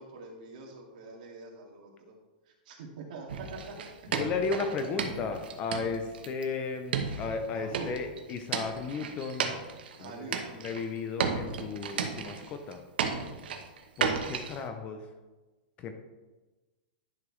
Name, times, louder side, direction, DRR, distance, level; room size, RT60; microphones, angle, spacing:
voice 1, 0.0-2.2 2.5-4.1 7.5-7.9 10.0-10.6, right 4 dB, 55° right, -1 dB, 2.0 m, -44 dB
sound 1, 3.3-6.4 6.9-10.1 10.3-10.9 11.2-12.7 13.0-14.6, right 6 dB, 85° right, 1.0 m, -34 dB
voice 2, 4.1-9.6 10.0-12.8 14.0-15.1 15.8-15.9, left 4 dB, 25° left, 7 dB, 0.6 m, -34 dB
10.5 x 5.8 x 3.2 m, 1.2 s
supercardioid pair, 160°, 5 cm